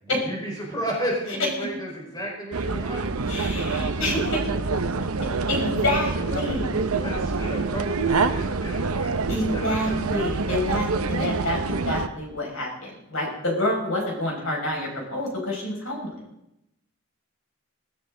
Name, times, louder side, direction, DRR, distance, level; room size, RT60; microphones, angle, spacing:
voice 1, 0.0-3.0 6.1-9.1 9.5-9.9, right 1 dB, 20° left, -2 dB, 4.6 m, -33 dB
sound 1, 2.5-12.1, right 4 dB, 80° right, 0.8 m, -26 dB
voice 2, 3.3-4.5 5.5-6.7 9.3-16.1, left 1 dB, 65° left, -1 dB, 6.1 m, -28 dB
18.0 x 16.5 x 3.9 m, 0.83 s
head